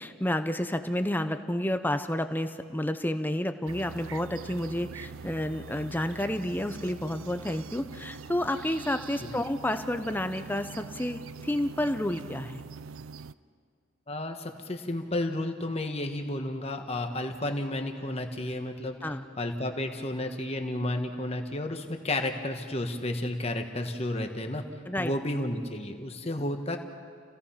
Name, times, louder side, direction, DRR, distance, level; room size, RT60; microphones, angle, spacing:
voice 1, 0.0-12.6 19.0-19.2 24.9-25.1, left 1 dB, 10° left, 9 dB, 0.7 m, -30 dB
sound 1, 3.7-13.3, right 5 dB, 75° right, 0.5 m, -43 dB
voice 2, 14.1-18.9 19.4-24.6 25.0-26.8, left 1 dB, 30° left, 5 dB, 1.5 m, -32 dB
29.5 x 17.0 x 5.8 m, 2.1 s
head